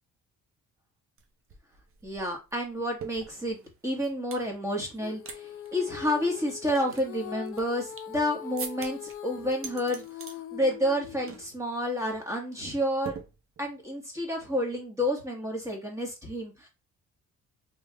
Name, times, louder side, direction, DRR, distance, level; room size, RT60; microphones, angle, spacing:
sound 1, 1.2-1.3 1.5-4.5 4.9-5.4 5.6-5.7 6.3-8.2 8.6-9.1 9.5-10.4 10.7-11.0 11.3-11.5 11.8-12.1 13.0-13.8, right 6 dB, 45° right, 0.8 m, -43 dB
voice 1, 2.0-3.6 3.8-10.0 10.5-13.2 13.6-16.7, equal, 10° right, 0 dB, 1.5 m, -30 dB
Female singing, 5.0-11.5, left 10 dB, 45° left, 0.5 m, -42 dB
3.3 x 3.2 x 2.3 m, 0.27 s
cardioid pair, 90°, 30 cm